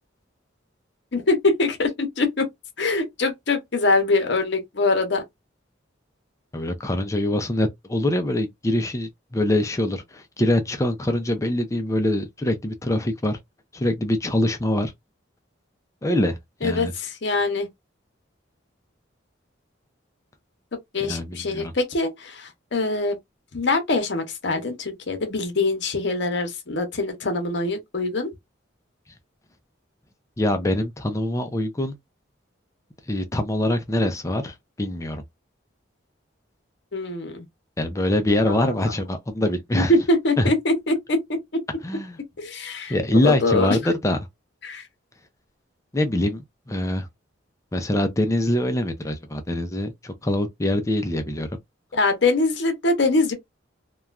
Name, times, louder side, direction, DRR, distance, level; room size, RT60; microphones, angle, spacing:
voice 1, 1.1-2.4 2.8-5.2 16.6-17.7 20.9-23.2 23.5-28.3 36.9-37.4 38.5-38.6 39.7-41.2 42.4-43.0 43.2-43.8 44.6-44.9 51.9-53.3, left 2 dB, 60° left, 0.8 m, -23 dB
voice 2, 6.5-13.4 13.7-14.9 16.0-16.9 21.0-21.7 30.4-31.9 33.1-35.2 37.8-39.9 40.4-40.5 41.8-42.2 42.9-44.2 45.9-47.1 47.7-51.5, left 1 dB, 15° left, 0.4 m, -24 dB
3.0 x 2.2 x 2.4 m
head